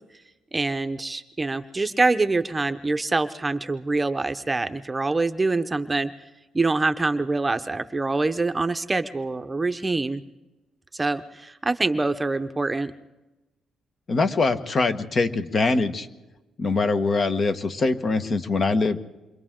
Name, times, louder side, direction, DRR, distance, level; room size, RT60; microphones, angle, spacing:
voice 1, 0.5-6.1 6.5-10.2 10.9-12.9, right 3 dB, 20° right, 9 dB, 0.8 m, -25 dB
voice 2, 14.1-16.1 16.6-19.0, left 3 dB, 45° left, 8 dB, 1.4 m, -23 dB
28.0 x 24.5 x 3.8 m, 1.1 s
cardioid pair, 90°, 0 cm